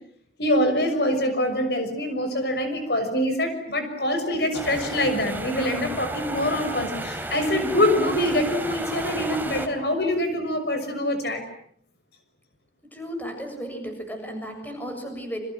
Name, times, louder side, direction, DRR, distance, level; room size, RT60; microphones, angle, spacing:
voice 1, 0.4-11.4, left 1 dB, 65° left, 8 dB, 6.2 m, -24 dB
sound 1, 4.5-9.7, right 1 dB, 10° right, 3.3 m, -33 dB
voice 2, 12.8-15.4, equal, 10° left, 5 dB, 7.2 m, -34 dB
29.5 x 26.5 x 7.7 m, 0.63 s
head